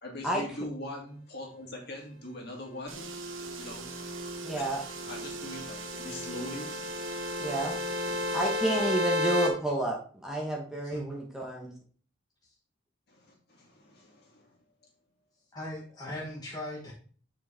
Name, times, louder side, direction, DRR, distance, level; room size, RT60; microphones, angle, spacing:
voice 1, 0.0-3.1 3.6-3.9 4.6-4.7 5.1-6.8 13.1-14.6, left 1 dB, 50° left, 0 dB, 2.4 m, -42 dB
sound 1, 2.9-9.0, right 3 dB, 70° right, 1.1 m, -40 dB
voice 2, 4.4-4.8 7.4-7.8 8.1-11.7, right 1 dB, 5° right, -1 dB, 1.1 m, -31 dB
sound 2, 4.5-9.5, left 2 dB, 45° right, 2.0 m, -33 dB
voice 3, 15.5-16.9, left 1 dB, 20° left, -4 dB, 1.3 m, -39 dB
9.4 x 4.9 x 3.5 m, 0.44 s
head